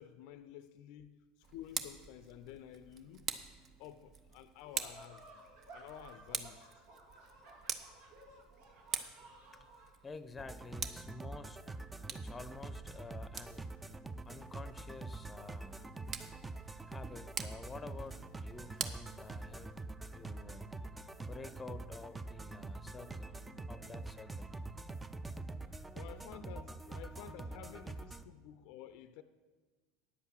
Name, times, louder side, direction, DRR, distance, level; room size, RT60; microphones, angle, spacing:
voice 1, 0.0-3.4 3.8-5.4 5.7-6.8 25.9-29.2, left 11 dB, 60° left, 0.5 m, -52 dB
Tick, 1.4-19.9, right 6 dB, 40° right, 0.9 m, -46 dB
sound 1, 4.8-9.9, right 2 dB, 75° right, 2.4 m, -56 dB
voice 2, 10.0-11.6 12.0-13.7 14.3-15.9 16.9-19.8 20.1-20.7 21.2-24.6, left 3 dB, 20° left, 0.7 m, -50 dB
sound 2, 10.4-28.2, right 2 dB, 15° right, 0.6 m, -45 dB
9.7 x 8.0 x 6.3 m
hypercardioid pair, 80°, 0 cm